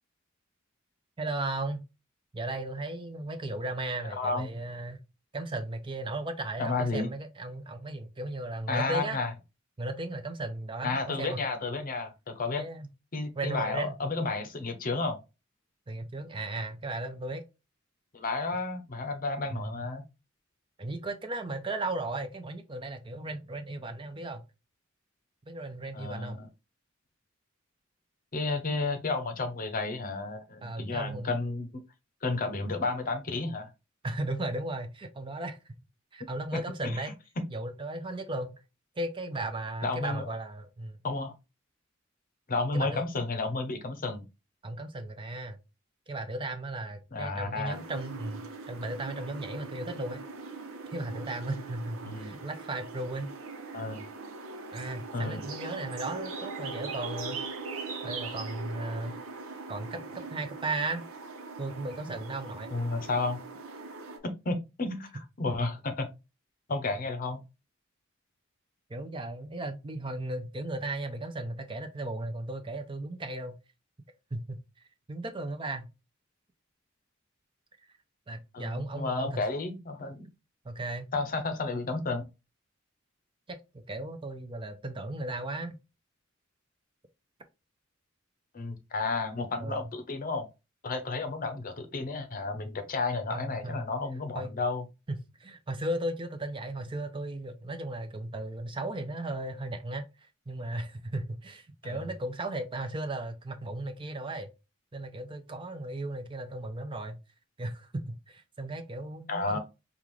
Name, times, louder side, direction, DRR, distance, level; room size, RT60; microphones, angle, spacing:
voice 1, 1.2-1.8 2.3-5.0 5.3-9.2 9.8-11.4 12.6-12.9 13.4-14.0 15.9-17.4 19.5-19.8 20.8-24.4 25.5-26.4 30.6-31.3 34.0-35.6 36.1-37.1 37.5-38.6 39.0-41.0 42.7-43.0 44.6-45.6 46.1-50.2 50.9-53.3 54.7-57.4 58.0-59.2 59.7-61.0 61.6-62.7 68.9-73.6 74.3-74.6 75.1-75.9 78.3-79.4 80.6-81.1 83.5-85.8 89.6-89.9 93.3-93.8 94.3-94.5 95.1-100.1 100.5-104.5 104.9-107.2 107.6-109.6, right 2 dB, 25° right, 0.5 m, -36 dB
voice 2, 4.2-4.5 6.6-7.1 8.7-9.3 10.8-12.6 13.1-15.2 18.1-20.0 25.9-26.5 28.3-31.7 32.2-33.7 36.5-37.0 39.8-40.4 41.0-41.3 42.5-44.2 47.1-47.8 52.1-52.3 53.7-54.0 55.1-55.4 62.7-63.4 64.2-66.1 66.7-67.4 78.5-80.3 81.1-82.2 88.5-90.5 90.8-94.8 101.8-102.0 109.3-109.6, left 3 dB, 45° left, 0.7 m, -32 dB
sound 1, 47.7-64.2, right 4 dB, 90° right, 0.9 m, -41 dB
5.3 x 2.4 x 3.1 m
head